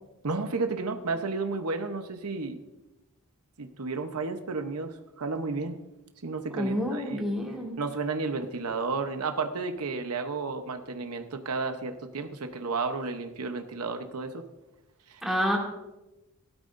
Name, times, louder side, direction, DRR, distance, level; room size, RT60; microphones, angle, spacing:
voice 1, 0.2-2.6 3.6-5.8 6.2-7.3 7.8-14.4 15.1-15.2, right 4 dB, 80° right, 7 dB, 0.9 m, -32 dB
voice 2, 6.5-7.7 15.2-15.6, equal, ahead, -3 dB, 2.4 m, -28 dB
16.5 x 12.5 x 2.6 m, 1.0 s
head